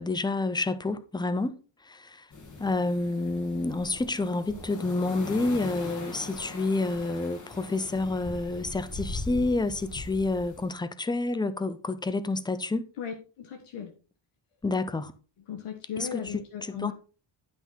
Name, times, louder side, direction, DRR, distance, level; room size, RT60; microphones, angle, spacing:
voice 1, 0.0-1.5 1.8-2.3 2.6-12.9 14.6-15.1 16.0-16.9, left 2 dB, 10° left, 0.4 m, -29 dB
sound 1, 2.3-10.7, left 3 dB, 35° left, 1.7 m, -40 dB
voice 2, 13.0-13.9 15.5-16.9, left 8 dB, 90° left, 1.5 m, -37 dB
10.0 x 6.0 x 4.1 m
wide cardioid pair, 180°, 50 cm